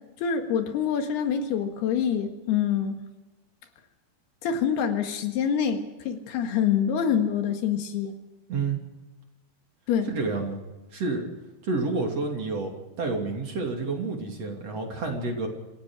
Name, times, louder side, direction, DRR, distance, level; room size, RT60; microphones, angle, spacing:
voice 1, 0.2-3.0 4.4-8.1 9.9-10.1, left 8 dB, 75° left, 6 dB, 3.7 m, -26 dB
voice 2, 10.1-10.6 10.9-11.3 11.6-12.7 13.0-15.5, right 3 dB, 40° right, 2 dB, 3.8 m, -29 dB
27.0 x 16.0 x 6.5 m, 1.1 s
omnidirectional pair, 4.7 m